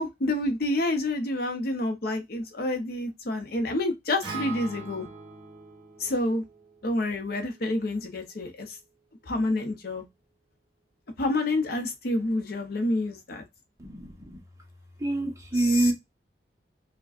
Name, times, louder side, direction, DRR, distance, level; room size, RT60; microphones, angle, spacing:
voice 1, 0.0-5.1 6.0-6.4 6.8-8.7 9.3-10.0 11.2-13.4 15.6-15.9, left 2 dB, 60° left, 0.7 m, -28 dB
Acoustic guitar, 4.2-8.5, right 4 dB, 35° right, 1.7 m, -42 dB
voice 2, 13.8-14.4 15.0-15.9, right 2 dB, 20° right, 0.8 m, -26 dB
4.8 x 2.2 x 2.4 m
head